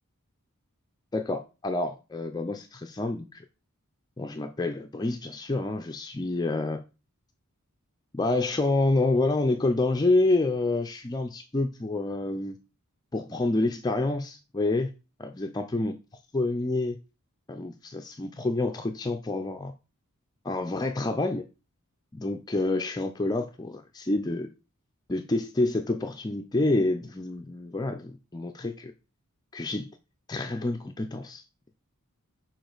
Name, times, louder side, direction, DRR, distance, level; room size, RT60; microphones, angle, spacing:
voice 1, 1.1-3.4 4.2-6.8 8.1-12.6 13.1-14.9 15.2-15.9 16.3-17.0 17.5-19.7 20.4-21.5 22.1-24.5 25.1-28.9 29.5-29.9 30.3-31.4, left 2 dB, 20° left, 0.4 m, -28 dB
6.8 x 4.5 x 3.9 m
head